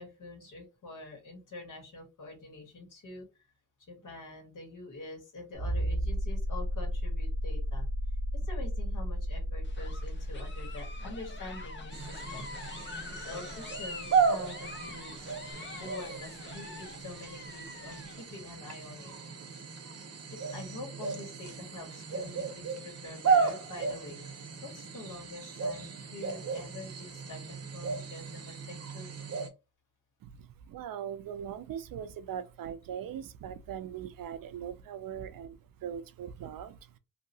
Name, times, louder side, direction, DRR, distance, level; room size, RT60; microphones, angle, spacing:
voice 1, 0.0-3.3 3.9-7.9 8.3-15.3 15.8-19.1 20.3-24.2 24.6-29.2, left 2 dB, 60° left, 1.7 m, -46 dB
sound 1, 5.6-14.0 15.5-15.6, equal, 15° right, 0.4 m, -34 dB
sound 2, 9.6-18.2, left 3 dB, 35° left, 0.8 m, -45 dB
sound 3, 11.9-29.5, right 5 dB, 45° right, 0.8 m, -34 dB
voice 2, 30.2-37.0, right 8 dB, 75° right, 0.5 m, -40 dB
2.8 x 2.7 x 2.8 m
wide cardioid pair, 115°, 34 cm